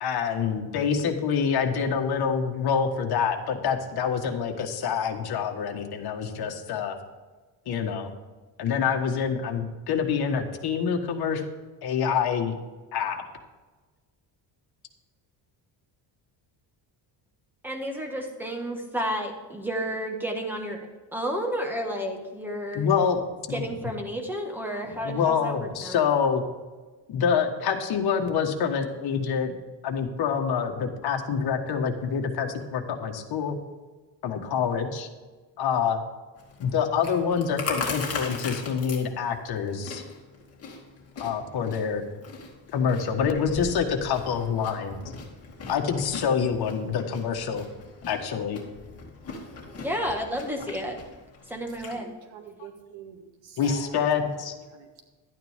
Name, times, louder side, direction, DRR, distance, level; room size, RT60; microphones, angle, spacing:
voice 1, 0.0-6.9 7.7-8.1 8.6-11.4 11.8-12.5 12.9-13.2 22.7-23.2 23.5-23.6 25.0-26.4 27.1-29.5 29.8-33.6 34.2-35.1 35.6-36.0 36.6-40.0 41.2-42.0 42.7-45.0 45.7-47.6 48.1-48.6 53.6-54.5, left 6 dB, 55° left, 3 dB, 1.5 m, -26 dB
voice 2, 17.6-20.8 21.1-22.9 23.5-26.0 49.8-51.0 51.5-52.1, equal, 5° right, 2 dB, 1.5 m, -31 dB
Chewing mastication, 36.4-52.0, left 4 dB, 35° left, 2.2 m, -40 dB
voice 3, 51.9-54.0 54.7-55.0, right 7 dB, 85° right, 3 dB, 2.1 m, -46 dB
12.0 x 9.3 x 3.6 m, 1.3 s
cardioid pair, 150°, 44 cm